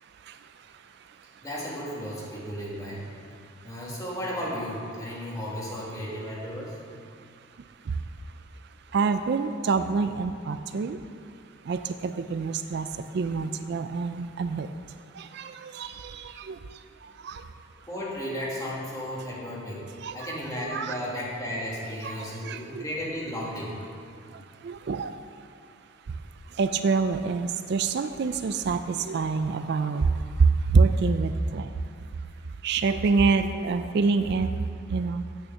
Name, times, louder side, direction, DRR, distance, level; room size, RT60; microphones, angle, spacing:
voice 1, 0.0-1.4 3.3-3.7 7.1-11.3 11.6-17.5 20.0-21.0 22.0-22.8 24.2-25.7 26.0-32.2 32.6-35.2, right 4 dB, 55° right, 9 dB, 0.4 m, -28 dB
voice 2, 1.4-3.0 3.6-6.8 17.9-19.8 20.1-23.8, equal, 15° left, -5 dB, 2.1 m, -34 dB
8.9 x 6.4 x 7.1 m, 2.3 s
head